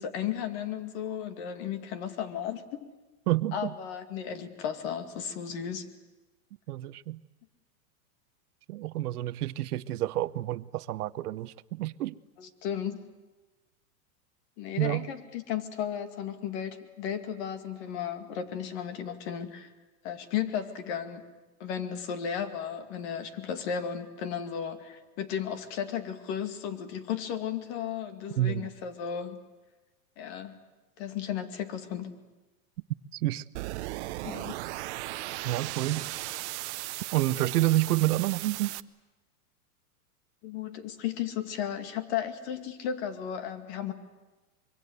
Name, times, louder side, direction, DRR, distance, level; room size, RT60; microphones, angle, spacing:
voice 1, 0.0-2.9 3.5-5.9 12.4-13.0 14.6-19.7 20.0-21.2 21.6-29.4 30.2-30.6 31.0-32.2 34.2-34.6 40.4-43.9, left 8 dB, 45° left, 2.3 m, -34 dB
voice 2, 3.3-3.7 6.7-7.2 8.7-12.1 14.8-15.1 28.4-28.7 33.1-33.4 35.4-36.1 36.8-38.7, right 15 dB, 80° right, 0.8 m, -29 dB
sound 1, 33.6-38.8, right 18 dB, 50° right, 0.7 m, -37 dB
25.0 x 23.5 x 8.0 m
supercardioid pair, 150°, 45 cm